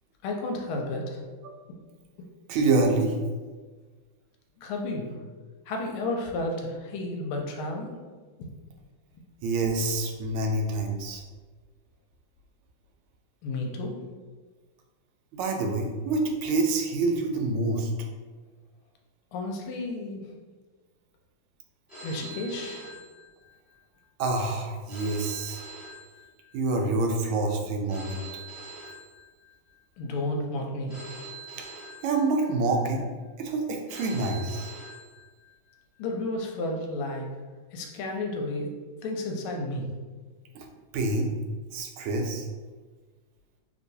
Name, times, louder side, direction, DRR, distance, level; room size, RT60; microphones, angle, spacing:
voice 1, 0.2-1.2 4.6-5.2 5.7-7.9 8.4-8.5 13.4-14.0 19.3-20.2 22.0-22.9 30.0-30.9 36.0-37.3 37.7-38.7 39.0-39.9, left 2 dB, 85° left, 1 dB, 1.5 m, -32 dB
voice 2, 2.5-3.1 9.4-11.2 15.3-17.9 24.2-25.6 26.5-28.2 32.0-33.0 33.4-34.7 40.5-40.7 40.9-41.3 41.7-42.5, right 2 dB, 85° right, 2 dB, 1.4 m, -27 dB
Telephone, 21.9-23.8 24.9-26.8 27.9-29.8 30.9-32.7 33.9-35.7, right 2 dB, ahead, 0.9 m, -44 dB
3.3 x 2.9 x 2.6 m, 1.4 s
omnidirectional pair, 2.3 m